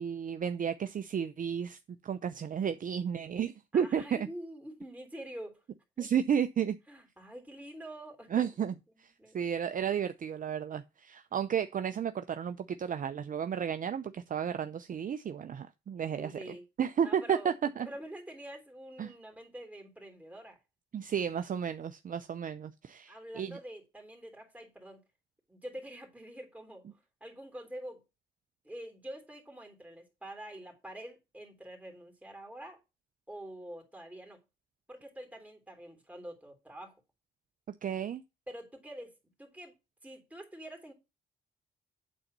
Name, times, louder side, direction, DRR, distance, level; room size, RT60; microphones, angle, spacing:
voice 1, 0.0-4.3 6.0-6.8 8.3-17.9 19.0-19.1 20.9-23.6 37.8-38.2, right 8 dB, 45° right, 0.6 m, -33 dB
voice 2, 3.7-5.6 6.0-6.1 6.9-8.5 9.2-9.4 16.2-16.7 17.0-17.5 17.8-20.6 23.1-25.0 25.5-28.0 28.6-32.8 33.3-34.4 34.9-37.0 38.5-39.1 39.4-39.8 40.0-40.9, right 1 dB, 5° right, 3.2 m, -46 dB
8.7 x 4.0 x 6.6 m
cardioid pair, 90°, 20 cm